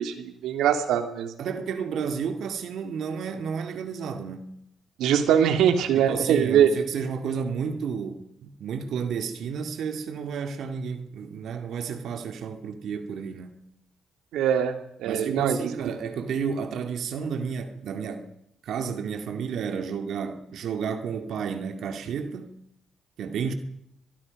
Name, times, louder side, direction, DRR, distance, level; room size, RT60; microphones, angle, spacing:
voice 1, 0.0-1.3 5.0-6.7 14.3-15.7, right 9 dB, 85° right, 2.8 m, -22 dB
voice 2, 1.4-4.5 6.0-13.6 15.0-18.3 18.6-22.5 23.2-23.5, right 6 dB, 70° right, 2.1 m, -31 dB
24.5 x 21.5 x 5.3 m
cardioid pair, 90°, 0 cm